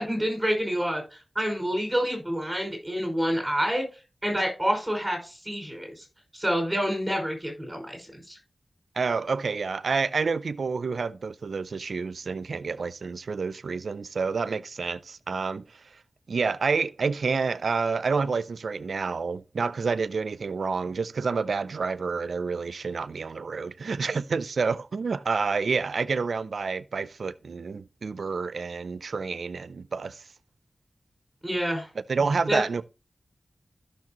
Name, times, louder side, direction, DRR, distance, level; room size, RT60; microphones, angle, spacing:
voice 1, 0.0-3.8 4.2-6.0 6.3-8.4 31.4-31.9 32.5-32.6, equal, 10° right, 5.5 m, -28 dB
voice 2, 9.0-15.6 16.3-30.2 32.1-32.9, right 4 dB, 80° right, 0.4 m, -29 dB
14.5 x 6.5 x 3.0 m
wide cardioid pair, 65°, 0 cm